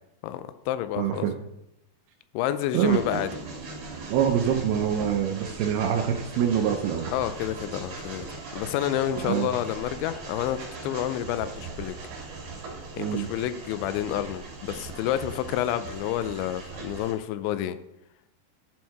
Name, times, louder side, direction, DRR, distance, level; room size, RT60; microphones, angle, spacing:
voice 1, 0.2-1.3 2.3-3.3 7.1-12.0 13.0-17.8, left 12 dB, 85° left, 12 dB, 2.8 m, -29 dB
voice 2, 1.0-1.3 2.7-3.2 4.1-7.1 9.2-9.5 13.0-13.3, right 9 dB, 85° right, 3 dB, 2.2 m, -25 dB
Train, 2.8-17.1, right 3 dB, 50° right, 3.3 m, -39 dB
12.0 x 4.5 x 4.7 m, 0.84 s
omnidirectional pair, 5.4 m